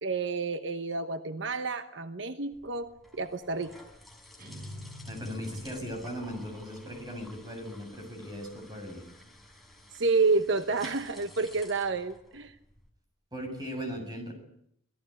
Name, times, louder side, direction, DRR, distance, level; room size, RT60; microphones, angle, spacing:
voice 1, 0.0-3.8 9.9-12.6, right 3 dB, 65° right, 9 dB, 1.1 m, -29 dB
sound 1, 2.5-12.9, left 1 dB, ahead, 4.3 m, -53 dB
sound 2, 4.4-6.4, left 1 dB, 45° right, 7.2 m, -44 dB
voice 2, 5.1-9.1 13.3-14.3, equal, 20° right, 4 dB, 7.5 m, -38 dB
26.0 x 18.0 x 9.8 m, 0.71 s
head